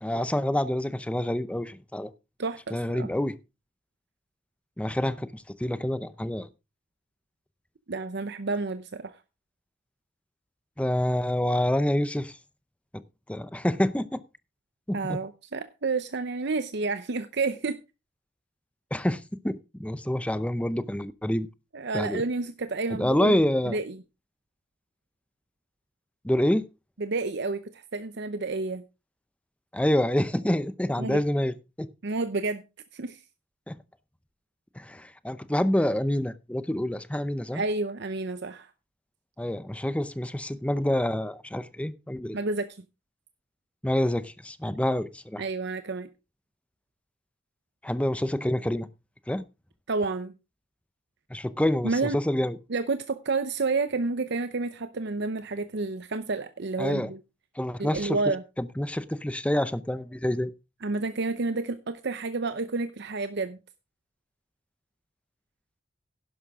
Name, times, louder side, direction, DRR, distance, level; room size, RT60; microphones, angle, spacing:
voice 1, 0.0-2.1 2.7-3.4 4.8-6.5 10.8-12.4 13.3-14.2 14.9-15.2 18.9-21.5 21.9-22.2 22.9-23.8 26.2-26.6 29.7-31.9 33.7-33.8 34.8-37.6 39.4-42.4 43.8-45.4 47.8-48.9 49.3-49.4 51.3-52.6 56.8-57.1 57.6-58.2 58.6-60.5, left 1 dB, 5° left, 0.6 m, -27 dB
voice 2, 2.4-3.1 7.9-9.2 14.9-17.8 21.7-23.4 23.7-24.0 27.0-28.8 31.0-31.2 32.0-32.6 32.9-33.2 37.5-38.7 42.3-42.7 45.4-46.1 49.9-50.3 51.8-52.2 52.7-57.2 57.8-58.4 60.8-63.6, right 3 dB, 60° right, 0.7 m, -30 dB
11.0 x 11.0 x 3.6 m
head